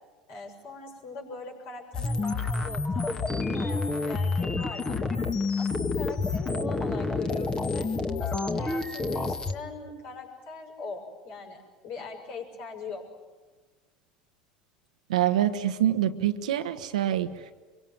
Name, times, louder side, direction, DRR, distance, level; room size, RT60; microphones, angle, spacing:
voice 1, 0.3-5.2 5.6-7.9 8.2-13.0, left 4 dB, 55° left, 2 dB, 6.9 m, -41 dB
sound 1, 1.9-9.5, left 3 dB, 20° left, 2.1 m, -28 dB
voice 2, 15.1-17.5, right 11 dB, 75° right, 9 dB, 1.3 m, -26 dB
25.0 x 24.0 x 9.3 m, 1.3 s
hypercardioid pair, 75°, 4 cm